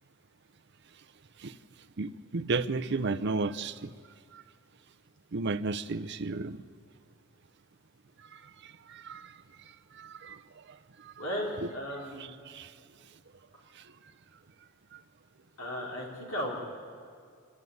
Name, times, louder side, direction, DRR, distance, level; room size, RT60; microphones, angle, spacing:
voice 1, 2.0-3.9 4.3-4.4 5.3-6.6 8.3-9.3 9.9-10.4 12.2-12.7 14.9-15.0, right 3 dB, 55° right, 10 dB, 0.7 m, -33 dB
voice 2, 11.2-12.3 15.6-16.6, equal, 80° left, -3 dB, 4.0 m, -35 dB
26.5 x 12.5 x 9.5 m, 2.1 s
head